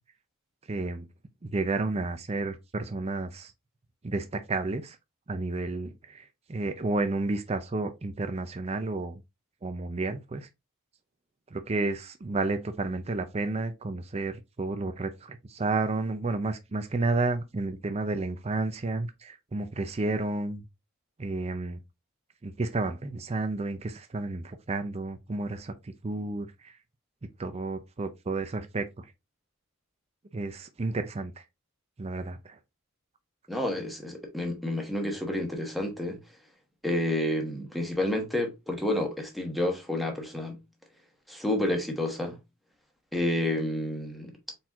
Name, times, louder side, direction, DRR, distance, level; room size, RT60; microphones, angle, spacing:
voice 1, 0.7-1.1 1.4-3.5 4.0-5.0 5.3-9.2 9.6-10.5 11.5-20.6 21.2-21.8 22.4-26.7 27.4-29.1 30.3-31.4 32.0-32.6, right 3 dB, 30° right, 0.5 m, -31 dB
voice 2, 33.5-36.2 36.8-40.6 41.3-42.4 43.1-44.3, left 1 dB, ahead, 1.1 m, -29 dB
4.3 x 4.0 x 2.4 m
head